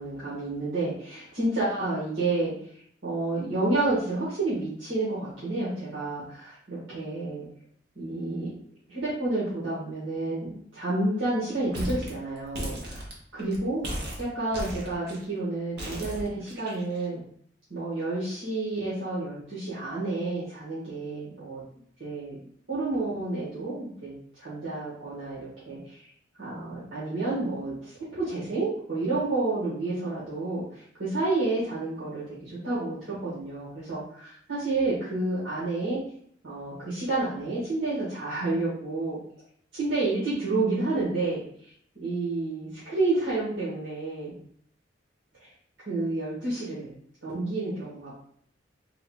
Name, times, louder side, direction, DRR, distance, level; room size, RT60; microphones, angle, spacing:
voice 1, 0.0-2.7 3.0-7.5 7.9-8.5 8.9-13.0 13.3-13.8 14.2-17.2 17.7-21.6 22.0-22.4 22.7-26.1 26.4-36.0 36.4-39.2 39.7-41.4 42.0-44.3 45.4-45.5 45.8-46.9 47.2-48.1, right 2 dB, 80° right, -10 dB, 1.6 m, -30 dB
sound 1, 11.7-12.1 12.4-13.6 13.8-15.2 15.8-17.0, equal, 60° right, 1.1 m, -35 dB
4.0 x 2.4 x 4.3 m, 0.64 s
head